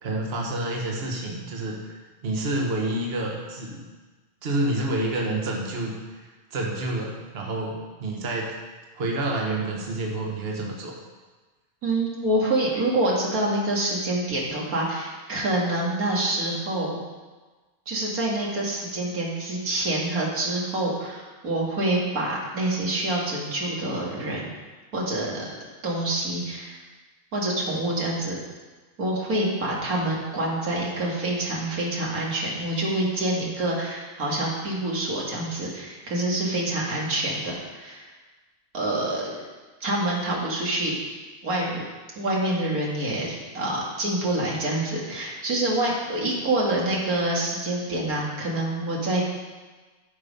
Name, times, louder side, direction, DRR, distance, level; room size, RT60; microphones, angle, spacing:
voice 1, 0.0-2.0 2.2-3.9 4.4-8.5 8.9-10.9, right 2 dB, 45° right, -1 dB, 1.4 m, -28 dB
voice 2, 11.8-17.0 17.9-24.5 24.9-25.5 25.8-26.8 27.3-28.4 29.0-38.1 38.7-39.4 39.8-40.9 41.4-41.8 42.2-49.2, right 1 dB, 85° right, -3 dB, 2.4 m, -26 dB
12.5 x 5.5 x 5.2 m, 1.3 s
omnidirectional pair, 1.5 m